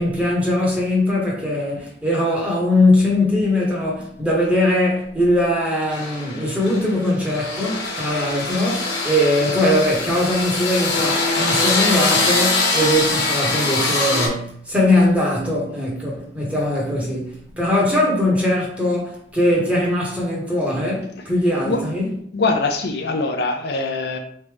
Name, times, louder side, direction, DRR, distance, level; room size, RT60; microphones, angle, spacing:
voice 1, 0.0-22.1, left 1 dB, 10° right, 1.2 m, -20 dB
sound 1, 5.9-14.3, left 3 dB, 85° left, 1.3 m, -22 dB
voice 2, 22.3-24.2, left 3 dB, 60° left, 0.6 m, -22 dB
4.0 x 3.3 x 3.4 m
head